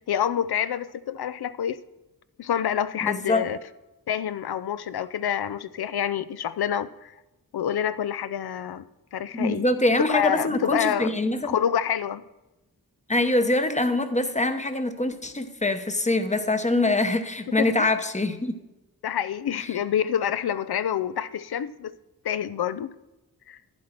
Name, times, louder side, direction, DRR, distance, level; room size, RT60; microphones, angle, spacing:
voice 1, 0.1-1.8 2.4-3.6 4.1-7.1 7.5-8.8 9.1-9.7 10.1-11.1 11.4-12.2 17.6-17.9 19.0-21.9 22.2-22.9 23.5-23.6, left 9 dB, 80° left, 0.5 m, -27 dB
voice 2, 3.0-3.4 9.3-11.6 13.1-18.5 19.6-19.7, left 2 dB, 20° left, 0.8 m, -24 dB
11.5 x 10.0 x 4.4 m
wide cardioid pair, 105°, 38 cm